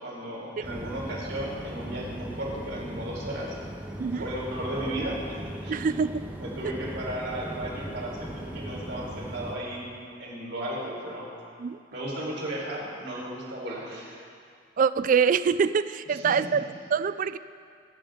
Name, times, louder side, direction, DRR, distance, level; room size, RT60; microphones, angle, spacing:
voice 1, 0.0-3.6 4.2-5.8 6.4-9.9 10.2-11.3 11.9-14.2 16.1-16.3, right 1 dB, 65° right, -5 dB, 4.7 m, -35 dB
sound 1, 0.6-9.6, equal, 10° right, 1.1 m, -38 dB
voice 2, 5.7-6.3 11.6-11.8 14.8-17.4, right 6 dB, 45° right, 14 dB, 0.3 m, -25 dB
24.0 x 11.0 x 3.9 m, 2.3 s
head